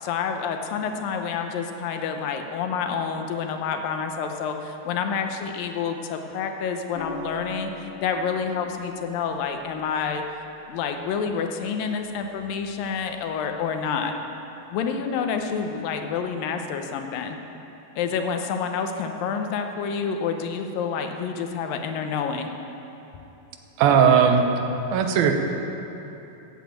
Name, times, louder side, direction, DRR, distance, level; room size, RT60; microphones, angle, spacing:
voice 1, 0.0-10.2 10.7-14.2 14.7-17.4 18.0-22.5, left 6 dB, 75° left, 5 dB, 2.5 m, -28 dB
sound 1, 6.9-11.1 12.8-13.2, left 3 dB, 50° left, 2.9 m, -41 dB
voice 2, 23.8-24.5 24.9-25.3, right 7 dB, 80° right, 5 dB, 2.7 m, -17 dB
14.0 x 8.3 x 8.4 m, 3.0 s
omnidirectional pair, 4.3 m